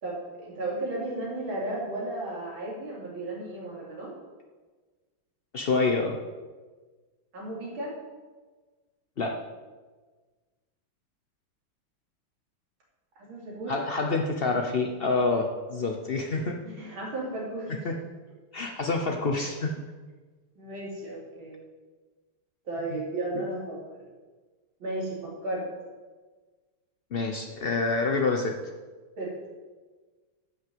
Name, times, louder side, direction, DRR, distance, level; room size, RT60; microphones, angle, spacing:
voice 1, 0.0-4.1 7.3-8.0 13.2-13.7 16.7-17.9 20.6-21.6 22.7-24.1 24.8-25.7 29.2-29.3, right 2 dB, 80° right, -4 dB, 3.8 m, -34 dB
voice 2, 5.5-6.2 9.2-9.4 13.7-16.6 17.8-18.0 18.5-19.8 27.1-28.5, left 3 dB, 80° left, 3 dB, 0.5 m, -27 dB
11.0 x 6.0 x 7.7 m, 1.4 s
omnidirectional pair, 2.2 m